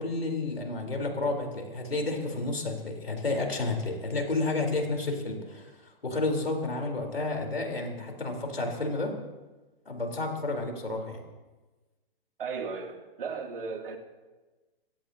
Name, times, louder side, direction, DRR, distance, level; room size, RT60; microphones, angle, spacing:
voice 1, 0.0-9.1 9.9-11.2, left 2 dB, 85° left, 2 dB, 4.1 m, -31 dB
voice 2, 12.4-14.0, right 5 dB, 65° right, 3 dB, 2.8 m, -35 dB
24.0 x 16.5 x 2.9 m, 1.2 s
figure-of-eight pair, 125°, 29 cm